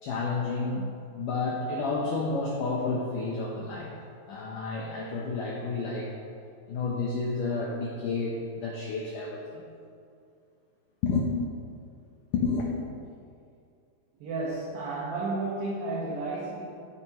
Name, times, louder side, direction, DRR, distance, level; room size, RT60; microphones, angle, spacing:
voice 1, 0.0-3.9 4.3-6.1 6.7-9.7 11.0-11.3 12.3-12.7, left 3 dB, 85° left, -2 dB, 1.8 m, -30 dB
voice 2, 14.2-16.6, right 3 dB, 65° right, -5 dB, 2.7 m, -32 dB
15.0 x 10.0 x 3.2 m, 2.4 s
omnidirectional pair, 5.4 m